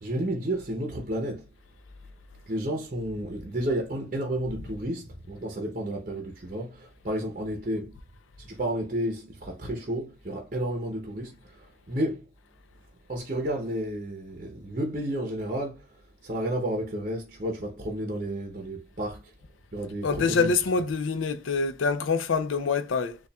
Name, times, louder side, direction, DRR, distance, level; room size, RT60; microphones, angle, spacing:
voice 1, 0.0-1.5 2.5-8.0 8.4-12.2 13.1-19.3 19.7-20.5, right 1 dB, 40° right, 0.7 m, -31 dB
voice 2, 20.0-23.2, left 4 dB, 85° left, 0.5 m, -25 dB
6.8 x 2.4 x 2.3 m
head